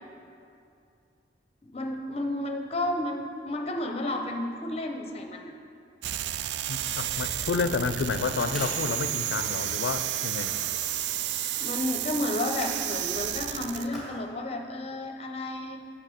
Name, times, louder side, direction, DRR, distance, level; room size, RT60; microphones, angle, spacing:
voice 1, 1.7-5.5 11.6-15.8, left 1 dB, 35° left, 3 dB, 0.7 m, -32 dB
sound 1, 6.0-13.9, right 11 dB, 75° right, 0.3 m, -31 dB
voice 2, 6.7-10.5, left 4 dB, 90° left, 11 dB, 0.4 m, -30 dB
sound 2, 7.3-9.7 10.4-10.8 12.4-12.9 13.9-14.2 14.7-14.8, equal, ahead, 1.9 m, -43 dB
6.6 x 6.1 x 6.4 m, 2.5 s
head